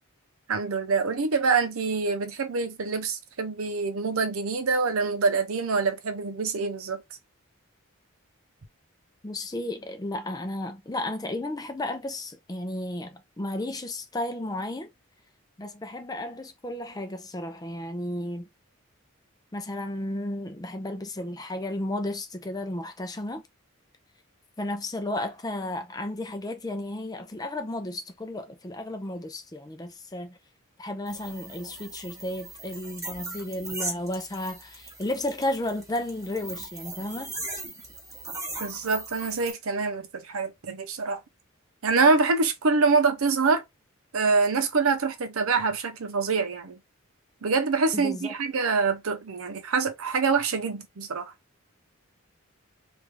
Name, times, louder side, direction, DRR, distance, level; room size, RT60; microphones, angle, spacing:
voice 1, 0.5-7.0 38.6-41.2 41.8-43.6 44.1-46.8 47.4-51.3, right 4 dB, 80° right, 0.7 m, -25 dB
voice 2, 9.2-14.9 15.6-18.5 19.5-23.4 24.6-30.4 30.8-37.3 47.9-48.3, left 1 dB, 15° left, 0.5 m, -33 dB
sound 1, 31.1-39.5, right 2 dB, 15° right, 0.9 m, -39 dB
3.4 x 2.5 x 3.2 m
head